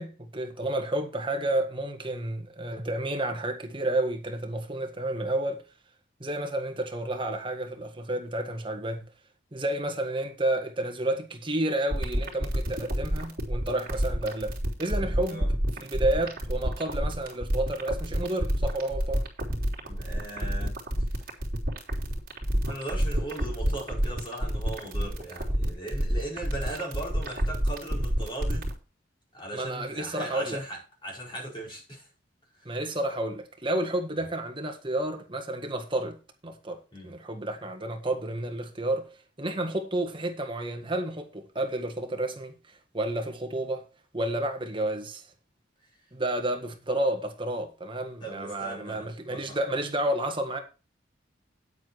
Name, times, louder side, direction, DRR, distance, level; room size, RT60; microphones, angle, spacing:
voice 1, 0.0-5.6 6.2-9.1 9.5-15.5 15.7-19.3 29.5-30.6 32.6-39.1 39.4-43.8 44.1-45.3 46.1-50.6, right 1 dB, 25° right, 1.6 m, -31 dB
sound 1, 11.9-28.7, equal, 50° right, 3.3 m, -28 dB
voice 2, 19.8-20.8 21.1-21.2 22.6-28.7 29.3-30.8 31.0-32.1 32.5-32.7 34.2-34.3 36.9-37.2 48.2-49.6, right 1 dB, 25° left, 4.9 m, -38 dB
9.5 x 8.3 x 4.7 m
head